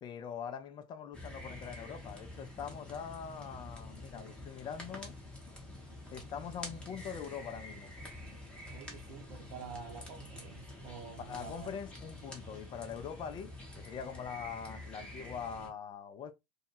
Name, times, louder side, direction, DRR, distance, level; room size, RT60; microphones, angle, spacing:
voice 1, 0.0-5.1 6.1-7.9 11.2-16.3, left 7 dB, 20° left, 0.4 m, -43 dB
sound 1, 1.1-15.7, left 1 dB, 5° left, 0.7 m, -48 dB
voice 2, 8.7-11.7, right 6 dB, 55° right, 0.8 m, -48 dB
2.2 x 2.0 x 3.1 m
figure-of-eight pair, 80°, 20 cm